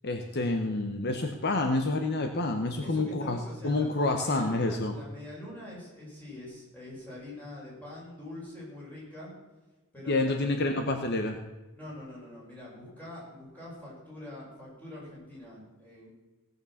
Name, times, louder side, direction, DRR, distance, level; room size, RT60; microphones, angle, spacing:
voice 1, 0.0-4.9 10.1-11.4, left 2 dB, 50° left, 5 dB, 0.9 m, -28 dB
voice 2, 2.8-9.4 9.9-10.4 11.7-16.1, left 1 dB, 10° left, -6 dB, 5.7 m, -44 dB
17.0 x 6.8 x 7.1 m, 1.2 s
head